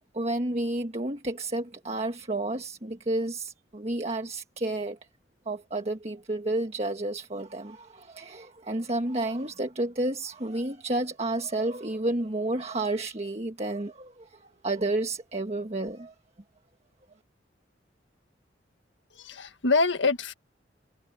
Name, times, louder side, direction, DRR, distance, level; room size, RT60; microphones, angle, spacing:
voice 1, 0.1-5.0 5.4-16.1, right 2 dB, 35° right, 1.5 m, -31 dB
voice 2, 19.1-20.3, left 3 dB, 80° left, 1.7 m, -25 dB
head